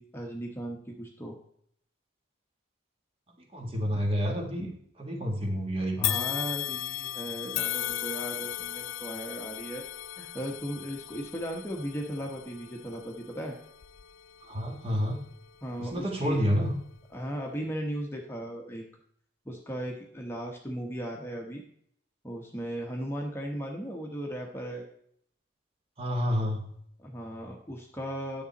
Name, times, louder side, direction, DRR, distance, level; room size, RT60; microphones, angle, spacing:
voice 1, 0.0-1.4 6.0-9.8 10.2-13.6 15.6-16.4 17.1-18.8 19.4-21.6 22.2-24.8 27.0-28.4, equal, 10° left, 0 dB, 1.1 m, -37 dB
voice 2, 3.5-4.7 5.0-6.2 14.5-15.2 15.8-16.7 26.0-26.6, equal, 30° right, 2 dB, 1.5 m, -29 dB
sound 1, 6.0-15.3 15.9-16.0 17.0-17.1, left 14 dB, 90° left, 0.5 m, -36 dB
10.0 x 7.0 x 4.1 m, 0.66 s
head